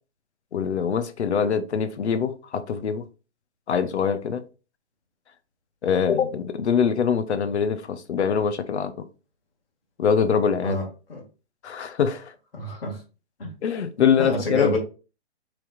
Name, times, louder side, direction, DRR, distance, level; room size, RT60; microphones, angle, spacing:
voice 1, 0.5-3.0 3.7-4.4 5.8-8.9 10.0-10.8 11.6-12.3 13.6-14.7, left 7 dB, 70° left, 0.7 m, -23 dB
voice 2, 10.6-11.2 12.5-13.0 13.4-13.5 14.2-14.8, left 1 dB, 55° left, 2.0 m, -27 dB
5.8 x 3.5 x 2.4 m
hypercardioid pair, 180°, 34 cm